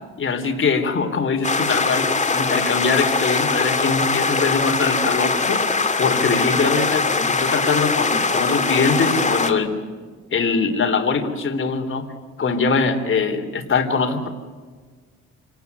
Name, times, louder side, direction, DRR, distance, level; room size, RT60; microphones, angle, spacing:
voice 1, 0.2-2.1 2.3-5.6 6.0-9.7 10.3-12.1 12.4-14.3, left 4 dB, 40° left, 4 dB, 3.6 m, -22 dB
sound 1, 1.4-9.5, left 4 dB, 25° left, 2.3 m, -21 dB
27.5 x 18.5 x 9.6 m, 1.5 s
cardioid pair, 90°, 30 cm